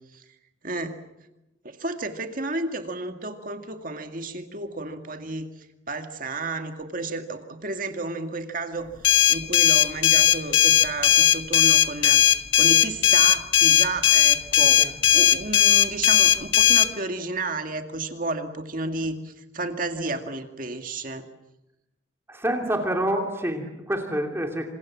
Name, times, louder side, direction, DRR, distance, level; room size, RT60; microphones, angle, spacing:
voice 1, 0.6-1.0 1.6-21.3, right 2 dB, 45° right, 6 dB, 2.1 m, -32 dB
sound 1, 9.0-16.9, left 10 dB, 75° left, 1.3 m, -17 dB
voice 2, 22.3-24.7, right 1 dB, 10° right, 3 dB, 2.9 m, -27 dB
27.5 x 27.5 x 7.5 m, 0.92 s
head